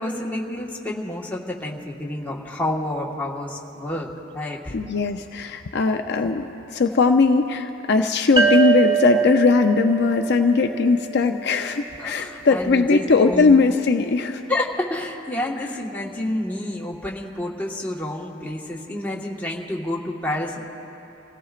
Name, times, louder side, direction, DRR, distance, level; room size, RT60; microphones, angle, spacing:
voice 1, 0.0-4.7 12.0-13.0 13.3-13.5 14.5-20.6, left 1 dB, 10° left, -4 dB, 1.4 m, -29 dB
voice 2, 4.7-14.4, left 4 dB, 60° left, 5 dB, 0.5 m, -19 dB
sound 1, 8.4-11.8, right 7 dB, 20° right, 0.7 m, -23 dB
28.5 x 17.0 x 2.5 m, 2.9 s
head